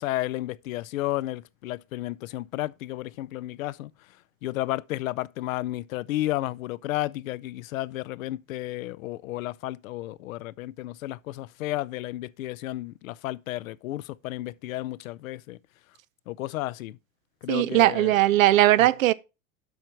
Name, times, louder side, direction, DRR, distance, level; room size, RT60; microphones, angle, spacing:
voice 1, 0.0-3.9 4.4-15.6 16.3-17.0 17.4-18.2 18.8-18.9, left 16 dB, 85° left, 0.6 m, -32 dB
voice 2, 17.5-19.1, right 15 dB, 90° right, 0.6 m, -19 dB
8.0 x 5.5 x 4.5 m
hypercardioid pair, 105°, 39 cm